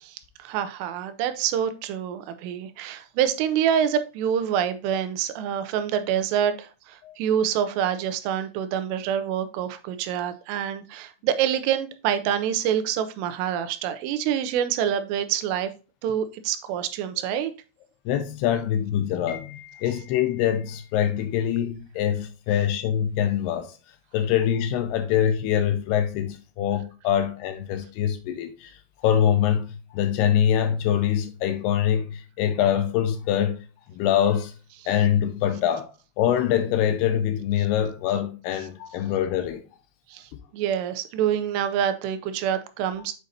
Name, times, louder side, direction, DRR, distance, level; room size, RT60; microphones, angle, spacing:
voice 1, 0.0-15.7 16.0-17.5 40.1-43.1, right 9 dB, 85° right, 2.9 m, -26 dB
voice 2, 18.1-23.7 24.1-28.8 29.0-33.6 33.9-34.5 34.9-35.9 36.2-39.6, left 10 dB, 85° left, 2.6 m, -24 dB
7.8 x 5.1 x 2.7 m
omnidirectional pair, 4.8 m